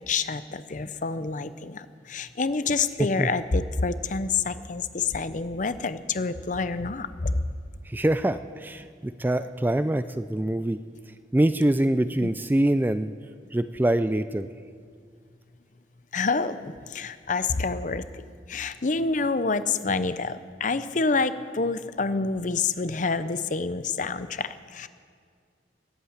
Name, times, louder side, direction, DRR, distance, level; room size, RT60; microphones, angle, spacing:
voice 1, 0.1-7.3 12.2-12.3 16.1-18.0 18.5-24.9, left 4 dB, 45° left, 13 dB, 0.7 m, -27 dB
voice 2, 3.0-3.3 7.9-10.8 11.3-13.1 13.5-14.5, right 1 dB, 10° right, 12 dB, 0.3 m, -24 dB
19.5 x 8.5 x 8.8 m, 2.1 s
head